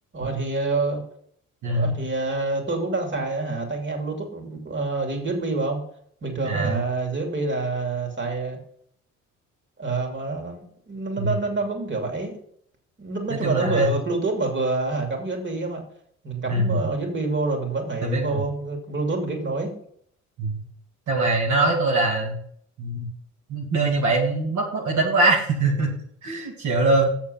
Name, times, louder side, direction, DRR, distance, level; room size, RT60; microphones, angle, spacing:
voice 1, 0.1-1.0 1.6-5.8 6.2-8.6 9.8-12.4 13.0-15.8 16.2-19.7, right 3 dB, 40° right, 2 dB, 2.8 m, -27 dB
voice 2, 6.5-6.8 11.2-11.4 13.3-13.9 16.5-16.8 18.0-18.5 20.4-20.6 21.1-22.4 22.8-23.1 23.5-25.9 26.2-27.1, right 2 dB, 75° right, -1 dB, 2.2 m, -22 dB
7.5 x 7.0 x 5.7 m, 0.64 s
cardioid pair, 90°, 30 cm